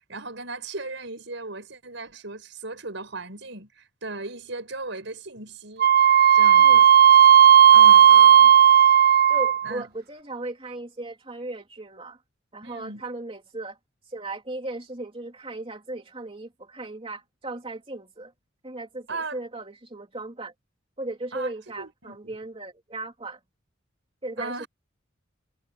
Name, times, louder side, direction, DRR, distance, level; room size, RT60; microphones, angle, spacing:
voice 1, 0.0-5.9 6.3-6.9 7.7-8.1 9.6-9.9 12.6-13.0 19.1-19.4 21.3-22.4 24.4-24.7, right 3 dB, 65° right, 5.7 m, -37 dB
Wind instrument woodwind instrument, 5.8-9.7, right 9 dB, 50° right, 0.4 m, -14 dB
voice 2, 7.8-8.5 9.3-12.2 12.5-13.8 14.0-18.3 18.6-20.5 21.0-23.4 24.2-24.6, right 2 dB, 30° right, 3.3 m, -37 dB
head